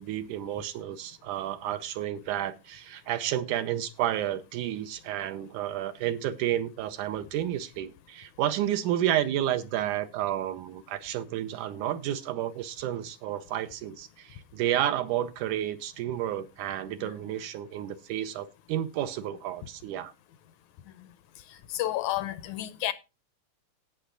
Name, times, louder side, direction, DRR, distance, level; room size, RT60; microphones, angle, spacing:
voice 1, 0.0-20.1, right 11 dB, 80° right, 2.2 m, -31 dB
voice 2, 21.7-22.9, left 14 dB, 75° left, 1.9 m, -30 dB
16.5 x 5.8 x 3.8 m
omnidirectional pair, 3.7 m